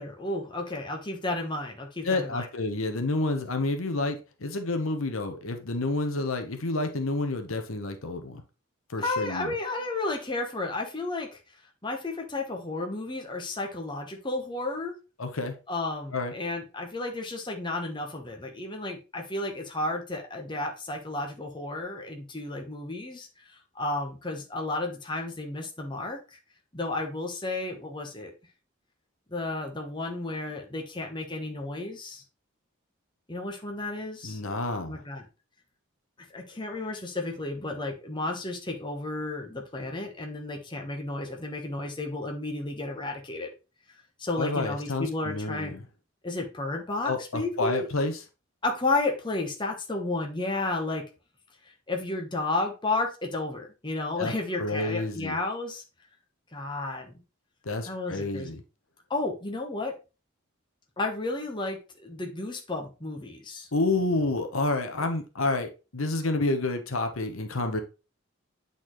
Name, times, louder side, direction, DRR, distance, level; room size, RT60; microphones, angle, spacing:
voice 1, 0.0-2.5 9.0-11.4 11.8-14.9 15.7-26.4 26.7-28.3 29.3-32.2 33.3-34.4 34.9-35.3 36.3-43.5 43.9-45.8 46.2-47.9 48.6-51.0 51.6-55.8 56.5-57.2 57.9-58.5 59.1-60.0 61.0-63.7, left 2 dB, 20° left, 2 dB, 1.1 m, -32 dB
voice 2, 2.0-8.4 8.9-9.5 15.2-15.5 16.1-16.3 34.2-35.0 44.4-45.8 47.0-48.1 54.2-54.3 54.6-55.4 57.6-58.6 63.7-67.8, left 2 dB, 80° left, 6 dB, 1.0 m, -29 dB
8.8 x 4.0 x 3.1 m, 0.30 s
head